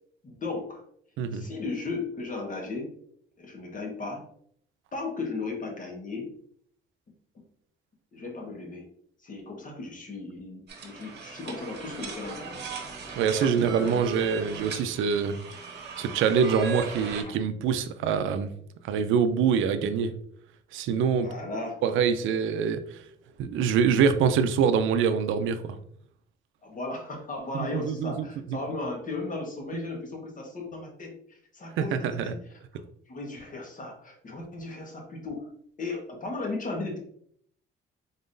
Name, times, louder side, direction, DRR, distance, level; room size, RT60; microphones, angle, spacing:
voice 1, 0.2-0.8 1.3-2.9 3.4-4.2 4.9-6.3 7.1-7.4 8.1-8.9 9.2-12.6 13.4-14.3 17.3-17.4 21.2-21.8 26.6-32.4 33.1-35.5 35.8-37.0, left 3 dB, 40° left, 1 dB, 1.4 m, -36 dB
sound 1, 10.7-17.2, right 3 dB, 55° right, 0.9 m, -37 dB
voice 2, 13.2-15.4 16.0-18.5 18.8-20.2 20.7-21.3 21.8-23.0 23.4-25.8 27.5-28.3 29.7-29.8 31.8-32.4, right 7 dB, 85° right, 10 dB, 0.4 m, -25 dB
3.9 x 3.6 x 2.6 m, 0.64 s
cardioid pair, 90°, 20 cm